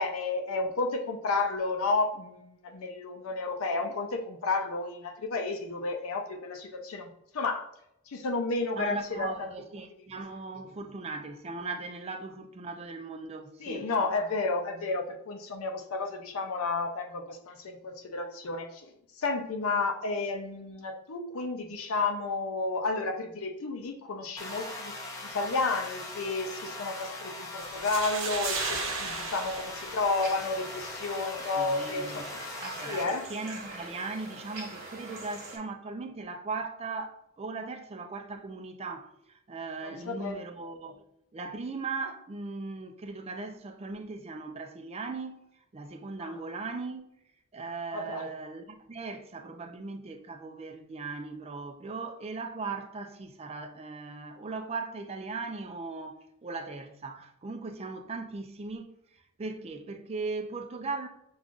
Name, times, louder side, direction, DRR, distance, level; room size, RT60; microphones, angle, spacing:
voice 1, 0.0-7.7 8.1-9.5 13.6-24.9 25.2-32.2 32.9-33.3 39.8-40.4 46.2-46.3 47.9-48.3, left 3 dB, 75° left, 0.5 m, -32 dB
voice 2, 8.8-13.9 31.6-41.0 41.3-45.5 45.7-47.1 47.5-58.9 59.4-61.1, right 3 dB, 30° right, 0.4 m, -38 dB
sound 1, 24.4-33.0, left 2 dB, 15° left, 0.7 m, -41 dB
sound 2, 27.6-30.6, right 4 dB, 70° right, 0.8 m, -35 dB
sound 3, 30.1-35.6, right 2 dB, 45° right, 1.2 m, -44 dB
6.7 x 2.4 x 2.4 m
head